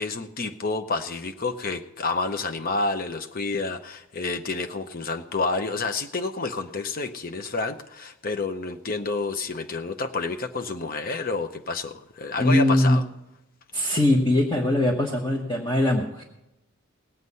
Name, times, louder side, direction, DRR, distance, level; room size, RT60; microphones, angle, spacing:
voice 1, 0.0-13.0, left 3 dB, 40° left, 8 dB, 0.7 m, -29 dB
voice 2, 12.4-13.0 13.7-16.2, left 1 dB, 20° left, 1 dB, 1.2 m, -21 dB
19.0 x 8.0 x 5.5 m, 0.89 s
head